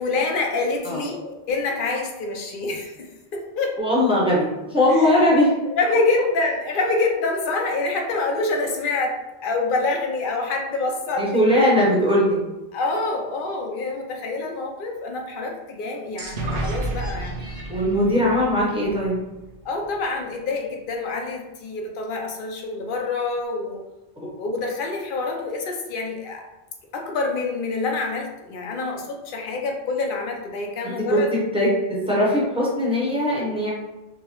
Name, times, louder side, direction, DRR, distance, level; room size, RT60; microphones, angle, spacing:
voice 1, 0.0-3.8 4.9-5.1 5.8-11.4 12.7-17.6 19.6-23.8 24.2-26.4 26.9-31.3, left 3 dB, 60° left, 1 dB, 0.8 m, -26 dB
voice 2, 3.8-5.5 11.2-12.4 17.7-19.1 31.1-31.2 31.5-31.7 32.1-33.7, left 1 dB, 5° right, -6 dB, 0.9 m, -19 dB
sound 1, 16.2-19.9, right 2 dB, 75° right, 0.9 m, -31 dB
4.5 x 2.0 x 2.9 m, 1.0 s
omnidirectional pair, 1.0 m